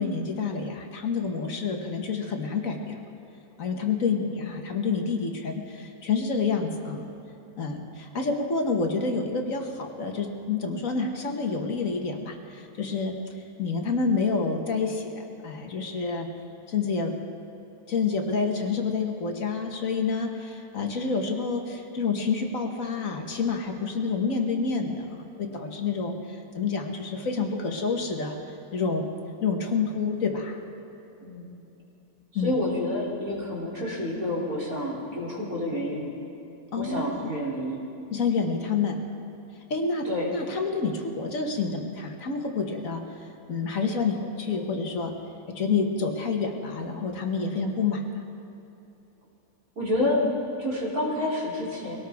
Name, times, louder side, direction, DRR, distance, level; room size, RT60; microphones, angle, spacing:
voice 1, 0.0-3.0 3.6-7.1 7.6-13.1 13.6-16.3 16.7-17.1 17.9-25.1 25.4-28.4 28.7-29.1 29.4-30.6 32.3-32.5 36.7-37.0 38.1-39.0 39.7-43.0 43.5-45.1 45.5-48.2, left 4 dB, 60° left, 3 dB, 1.7 m, -28 dB
voice 2, 32.3-36.1 36.8-37.8 40.0-40.3 49.8-50.2 50.6-51.9, left 1 dB, 70° right, -5 dB, 3.7 m, -29 dB
22.5 x 18.0 x 3.5 m, 2.9 s
omnidirectional pair, 1.6 m